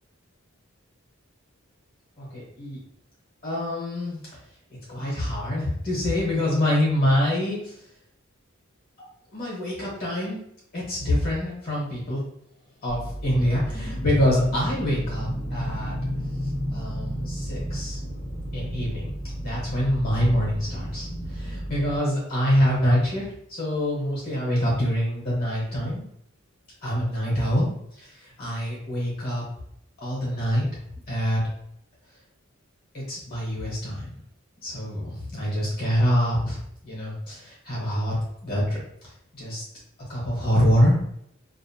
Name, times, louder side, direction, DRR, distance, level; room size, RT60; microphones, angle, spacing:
voice 1, 2.2-2.8 3.4-4.2 4.9-7.8 9.3-12.2 12.8-16.0 16.7-18.0 18.5-19.1 19.4-26.1 26.8-27.7 27.9-29.4 30.0-30.7 31.1-31.4 32.9-34.1 34.6-36.6 36.8-38.2 38.4-38.8 39.3-39.6 40.1-41.0, equal, 45° left, -6 dB, 1.0 m, -25 dB
sound 1, 12.9-22.0, equal, 25° left, 0.5 m, -32 dB
2.6 x 2.0 x 2.6 m, 0.73 s
head